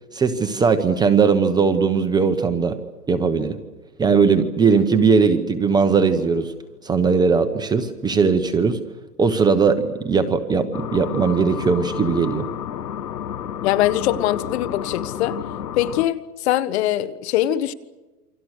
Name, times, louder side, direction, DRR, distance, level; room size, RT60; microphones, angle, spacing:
voice 1, 0.1-2.8 3.1-3.5 4.0-6.5 6.8-8.8 9.2-12.5, right 5 dB, 10° right, 1.0 m, -19 dB
sound 1, 10.7-16.1, left 9 dB, 80° left, 1.6 m, -31 dB
voice 2, 13.6-15.4 15.7-17.7, left 13 dB, 45° left, 1.5 m, -22 dB
28.5 x 25.0 x 6.5 m
hypercardioid pair, 145°, 47 cm